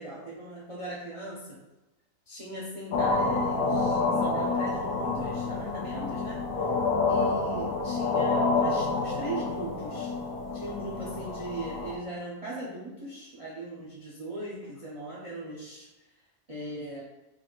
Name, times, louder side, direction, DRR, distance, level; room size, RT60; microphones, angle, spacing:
voice 1, 0.0-1.5 2.3-6.4 7.1-10.1 10.5-15.9 16.5-17.0, right 1 dB, 50° right, -5 dB, 0.4 m, -39 dB
sound 1, 2.9-12.0, left 3 dB, 80° left, 1.1 m, -28 dB
4.0 x 2.6 x 2.9 m, 1.0 s
omnidirectional pair, 1.6 m